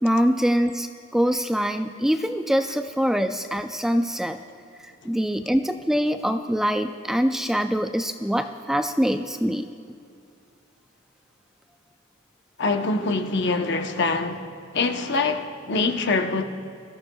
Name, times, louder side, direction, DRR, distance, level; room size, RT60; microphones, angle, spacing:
voice 1, 0.0-4.4 4.8-9.7, equal, ahead, 0.3 m, -24 dB
voice 2, 12.6-14.5 14.7-16.4, left 3 dB, 60° left, 0.9 m, -24 dB
23.0 x 14.0 x 2.3 m
head